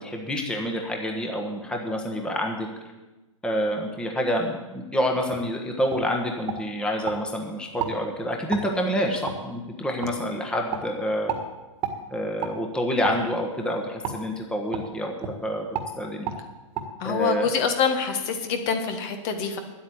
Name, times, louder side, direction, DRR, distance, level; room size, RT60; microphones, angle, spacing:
voice 1, 0.0-2.7 3.4-11.3 12.1-15.1 15.4-15.7 16.0-16.3 17.0-17.5, equal, 5° left, 1 dB, 1.4 m, -27 dB
sound 1, 5.3-5.5 5.9-6.0 6.5-7.2 7.8-8.0 8.5-8.7 9.3-9.4 10.0-10.1 10.7-10.9 11.3-11.4 11.8-12.0 12.4-12.5 13.0-13.2 14.0-14.2 14.7-14.9 15.2-15.4 15.7-15.9 16.2-16.4 16.7-16.9, right 8 dB, 30° right, 1.8 m, -31 dB
voice 2, 17.0-19.6, left 6 dB, 40° left, 7 dB, 1.7 m, -25 dB
10.0 x 8.7 x 8.7 m, 1.1 s
hypercardioid pair, 130°, 17 cm